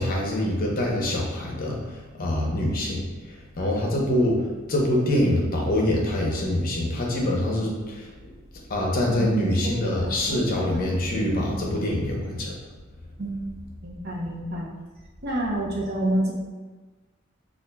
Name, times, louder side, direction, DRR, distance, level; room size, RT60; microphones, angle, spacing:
voice 1, 0.0-1.8 2.2-3.0 3.6-4.4 4.7-8.1 8.7-12.5, left 1 dB, 45° left, -2 dB, 0.7 m, -24 dB
voice 2, 9.0-10.4 10.7-10.8 11.2-12.0 13.2-13.4 13.8-14.7 15.2-16.3, right 1 dB, 55° right, -3 dB, 0.7 m, -29 dB
5.2 x 2.5 x 2.2 m, 1.3 s
head